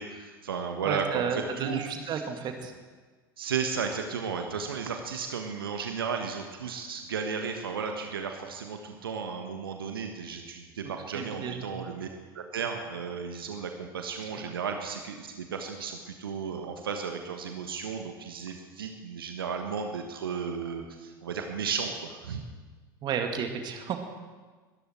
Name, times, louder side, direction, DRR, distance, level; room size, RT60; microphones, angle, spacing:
voice 1, 0.0-2.2 3.4-12.1 12.3-22.4, right 6 dB, 70° right, 5 dB, 1.3 m, -34 dB
voice 2, 0.8-2.7 11.1-11.8 23.0-24.0, right 7 dB, 35° right, 5 dB, 2.1 m, -32 dB
21.5 x 13.5 x 4.5 m, 1.4 s
figure-of-eight pair, 80°, 12 cm